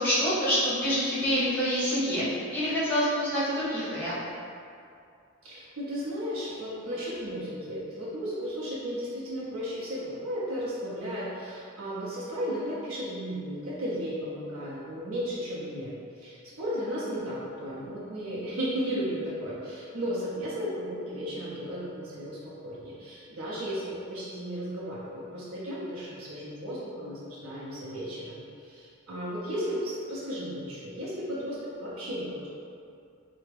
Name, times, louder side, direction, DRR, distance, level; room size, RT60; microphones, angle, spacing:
voice 1, 0.0-4.1, equal, 10° left, -11 dB, 0.9 m, -26 dB
voice 2, 5.4-32.5, equal, 85° right, -7 dB, 0.6 m, -34 dB
3.3 x 2.1 x 3.3 m, 2.4 s
head